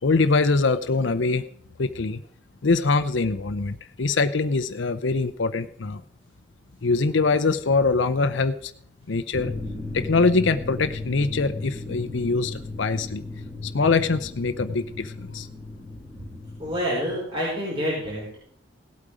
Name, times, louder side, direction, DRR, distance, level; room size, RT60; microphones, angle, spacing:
voice 1, 0.0-1.4 1.8-2.2 2.6-6.0 6.8-8.7 9.1-9.5 9.9-13.2 13.6-15.5, left 3 dB, 80° left, 9 dB, 0.7 m, -23 dB
sound 1, 9.3-16.8, left 2 dB, 5° right, 3.4 m, -36 dB
voice 2, 16.6-18.4, equal, 25° right, -7 dB, 5.2 m, -27 dB
17.0 x 8.6 x 5.0 m, 0.63 s
head